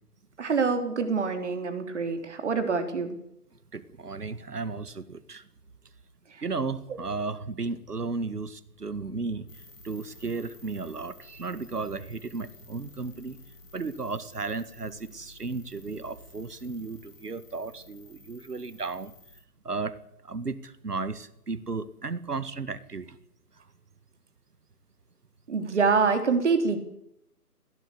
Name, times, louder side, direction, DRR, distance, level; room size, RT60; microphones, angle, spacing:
voice 1, 0.4-3.2 6.3-6.4 25.5-26.8, right 5 dB, 45° right, 7 dB, 3.9 m, -26 dB
voice 2, 3.7-5.5 6.4-13.4 13.7-19.1 19.6-20.0 20.2-23.2, right 4 dB, 75° right, 15 dB, 2.1 m, -34 dB
sound 1, 9.5-19.4, left 3 dB, 55° left, 7.2 m, -53 dB
21.0 x 16.0 x 8.3 m, 0.76 s
figure-of-eight pair, 155°, 47 cm